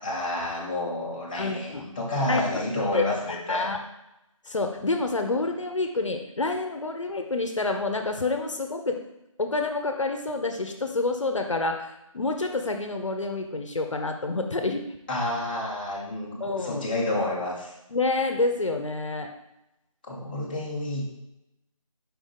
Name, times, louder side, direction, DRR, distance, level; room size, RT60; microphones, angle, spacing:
voice 1, 0.0-3.7 15.1-17.7 20.0-21.1, left 1 dB, 15° left, -6 dB, 0.7 m, -29 dB
voice 2, 1.4-1.8 2.3-2.6 2.9-3.0 3.5-3.8 4.5-9.0 9.4-14.8 16.4-16.8 17.9-19.3, left 3 dB, 60° left, 5 dB, 0.8 m, -28 dB
5.1 x 5.0 x 3.8 m, 0.88 s
figure-of-eight pair, 160°, 18 cm